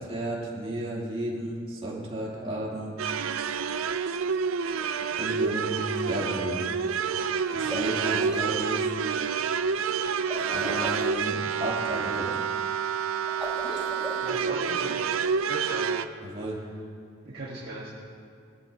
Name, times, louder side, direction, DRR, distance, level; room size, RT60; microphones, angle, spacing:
voice 1, 0.0-3.1 5.2-6.6 7.5-8.9 10.5-12.3 16.2-16.6, right 1 dB, 30° right, -6 dB, 3.2 m, -33 dB
sound 1, 3.0-16.1, right 6 dB, 85° right, 0.5 m, -28 dB
sound 2, 7.5-8.4 10.3-11.2 13.3-14.4, equal, 5° right, 2.2 m, -37 dB
voice 2, 14.2-15.0 15.5-15.8 17.2-17.9, right 2 dB, 50° right, -6 dB, 1.6 m, -37 dB
22.5 x 13.0 x 2.9 m, 2.2 s
head